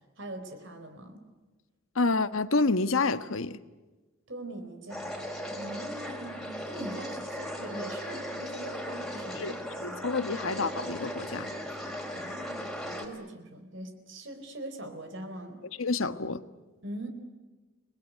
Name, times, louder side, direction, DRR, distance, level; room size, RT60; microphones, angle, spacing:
voice 1, 0.2-1.2 4.3-5.2 5.5-10.1 12.1-15.6 16.8-17.1, right 1 dB, 60° right, 4.3 m, -42 dB
voice 2, 1.9-3.6 9.4-9.5 9.8-11.5 15.8-16.4, left 3 dB, 85° left, 1.4 m, -28 dB
sound 1, 4.9-13.1, equal, ahead, 4.1 m, -37 dB
30.0 x 21.0 x 9.4 m
head